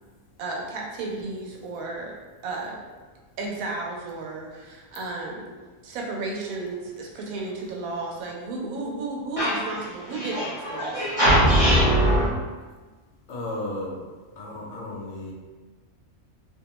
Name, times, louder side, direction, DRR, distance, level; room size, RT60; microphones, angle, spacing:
voice 1, 0.4-2.1 2.4-2.8 3.4-11.1, right 3 dB, 90° right, -1 dB, 1.0 m, -33 dB
voice 2, 10.1-12.3, equal, 45° left, -11 dB, 0.5 m, -21 dB
voice 3, 13.3-14.0 14.4-15.3, left 1 dB, 65° left, -3 dB, 0.8 m, -33 dB
2.5 x 2.2 x 2.9 m, 1.3 s
omnidirectional pair, 1.4 m